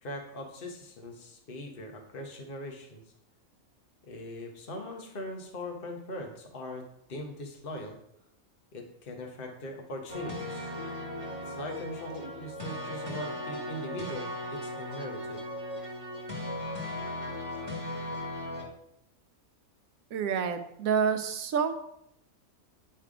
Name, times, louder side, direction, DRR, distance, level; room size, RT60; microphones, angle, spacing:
voice 1, 0.0-3.0 4.0-8.0 8.7-10.7 11.3-15.4, left 1 dB, 40° left, 2 dB, 1.3 m, -41 dB
sound 1, 10.1-18.6, left 1 dB, 25° left, 1.8 m, -37 dB
voice 2, 20.1-21.7, right 6 dB, 75° right, 8 dB, 1.1 m, -28 dB
9.9 x 3.4 x 4.9 m, 0.77 s
omnidirectional pair, 1.5 m